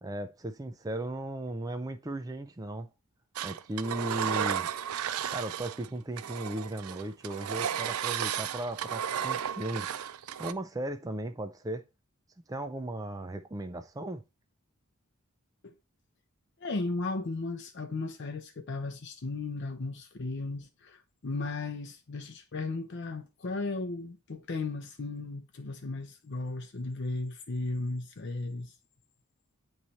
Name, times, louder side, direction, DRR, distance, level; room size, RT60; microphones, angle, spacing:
voice 1, 0.0-2.9 3.4-4.7 5.3-9.9 10.4-11.8 12.5-14.2, right 1 dB, 15° right, 0.4 m, -36 dB
Engine, 3.4-5.9 6.2-10.5, right 9 dB, 80° right, 0.4 m, -33 dB
voice 2, 16.6-28.7, left 3 dB, 55° left, 0.6 m, -35 dB
8.8 x 3.2 x 4.1 m
head